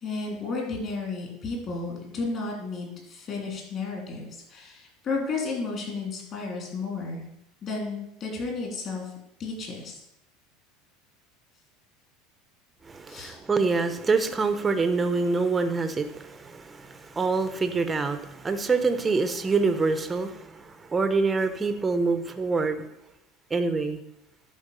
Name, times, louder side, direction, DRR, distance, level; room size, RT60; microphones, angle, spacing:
voice 1, 0.0-7.2 7.6-9.1 9.4-10.0 13.1-13.4, left 3 dB, 35° left, 0 dB, 3.2 m, -33 dB
voice 2, 12.8-22.8 23.5-24.0, right 4 dB, 15° right, 9 dB, 0.7 m, -26 dB
11.0 x 4.7 x 6.8 m, 0.82 s
cardioid pair, 155°, 0 cm